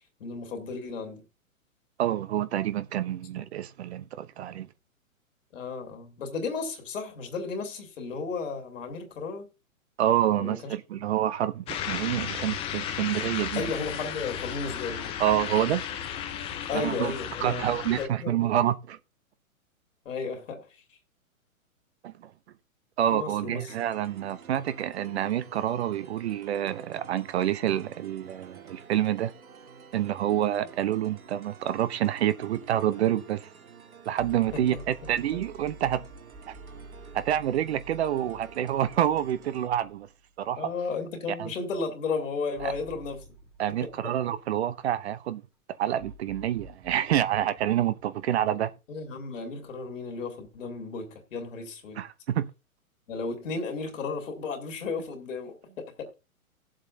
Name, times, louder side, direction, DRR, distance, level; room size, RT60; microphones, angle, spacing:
voice 1, 0.2-1.2 5.5-9.5 10.4-11.0 13.6-15.1 16.7-18.6 20.0-21.0 23.0-23.7 34.5-34.7 35.3-35.4 40.6-43.2 43.8-43.9 48.9-52.0 53.1-56.1, left 4 dB, 60° left, 3.0 m, -34 dB
voice 2, 2.0-4.7 10.0-13.6 15.2-15.8 16.7-17.1 17.4-19.0 22.0-22.3 23.0-29.3 29.9-33.5 34.1-36.0 36.5-36.6 37.1-40.1 40.4-40.7 41.4-41.5 42.6-42.7 43.6-45.4 45.8-48.7 52.0-52.5, right 11 dB, 50° right, 0.8 m, -27 dB
sound 1, 11.7-18.1, left 9 dB, 15° left, 0.6 m, -34 dB
sound 2, 23.7-39.7, right 6 dB, 80° right, 1.7 m, -50 dB
sound 3, 34.2-40.5 40.9-41.0 42.6-45.0 46.0-48.7, right 2 dB, 5° right, 1.4 m, -49 dB
17.5 x 7.6 x 2.7 m
figure-of-eight pair, 120°, 42 cm